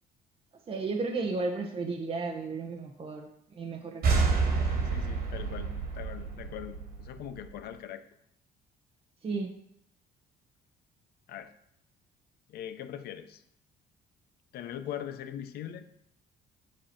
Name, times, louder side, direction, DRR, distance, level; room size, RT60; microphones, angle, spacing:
voice 1, 0.7-4.3 9.2-9.5, right 3 dB, 35° right, 3 dB, 0.9 m, -34 dB
sound 1, 4.0-7.5, right 4 dB, 65° right, 2.4 m, -29 dB
voice 2, 4.8-8.0 11.3-11.5 12.5-13.4 14.5-15.9, left 10 dB, 65° left, 9 dB, 0.8 m, -41 dB
9.5 x 4.8 x 4.4 m, 0.72 s
cardioid pair, 110°, 17 cm